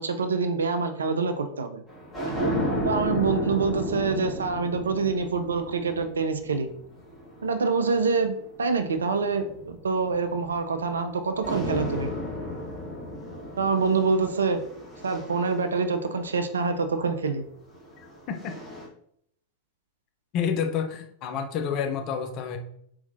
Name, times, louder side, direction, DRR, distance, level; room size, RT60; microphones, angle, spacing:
voice 1, 0.0-1.8 2.8-6.7 7.4-12.1 13.6-14.6 15.0-17.5, right 4 dB, 70° right, 8 dB, 0.4 m, -26 dB
sound 1, 1.9-8.5 9.2-11.1 11.4-16.8 17.7-18.9, equal, 10° left, 1.1 m, -34 dB
voice 2, 20.3-22.6, left 7 dB, 40° left, 5 dB, 0.5 m, -29 dB
4.4 x 2.3 x 2.7 m, 0.68 s
figure-of-eight pair, 90°, 0 cm